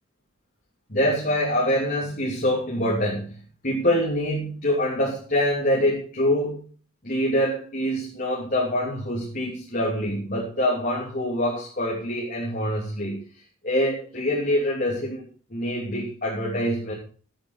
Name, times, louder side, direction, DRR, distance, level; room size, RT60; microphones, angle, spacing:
voice 1, 0.9-3.4 3.6-6.6 7.0-13.3 13.6-15.2 15.5-16.9, equal, 40° left, -4 dB, 2.9 m, -25 dB
13.0 x 8.8 x 4.7 m, 0.41 s
head